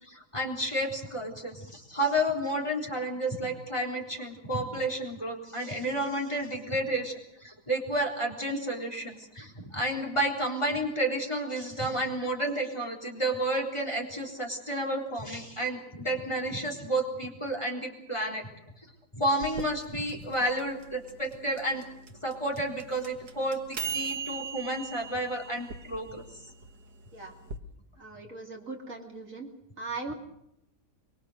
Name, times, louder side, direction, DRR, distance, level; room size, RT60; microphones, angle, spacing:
voice 1, 0.0-18.5 19.1-21.8 22.2-26.2, right 1 dB, 15° left, 2 dB, 4.0 m, -31 dB
sound 1, 19.4-27.6, right 6 dB, 70° right, 2.0 m, -39 dB
voice 2, 28.0-29.5 29.8-30.1, right 3 dB, 50° right, 1 dB, 3.4 m, -39 dB
24.0 x 23.5 x 6.5 m, 0.78 s
omnidirectional pair, 1.8 m